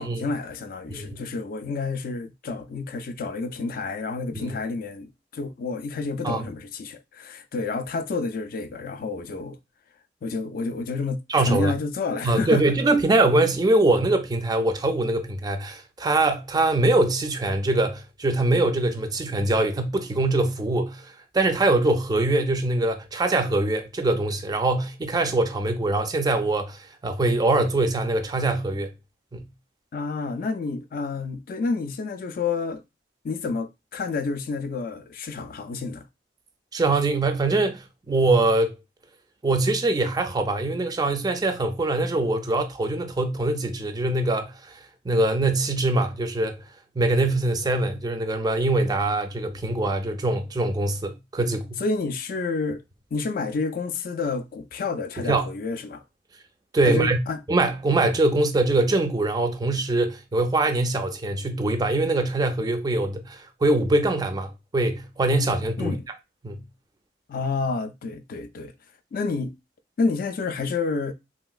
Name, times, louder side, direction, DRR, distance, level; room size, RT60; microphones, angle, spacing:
voice 1, 0.0-9.6 10.2-12.7 29.9-32.8 33.2-36.1 51.8-52.8 53.1-56.0 56.8-57.4 65.8-66.0 67.3-68.7 69.1-69.5 70.0-71.1, left 4 dB, 55° left, 0.3 m, -29 dB
voice 2, 0.9-1.3 4.3-4.5 6.2-6.4 11.3-11.7 12.2-28.9 29.3-29.4 36.7-38.7 39.4-44.8 45.1-46.6 47.0-51.8 55.2-55.5 56.7-57.2 57.5-66.0 66.4-66.6, right 2 dB, 20° right, 0.4 m, -23 dB
3.1 x 2.8 x 2.3 m
head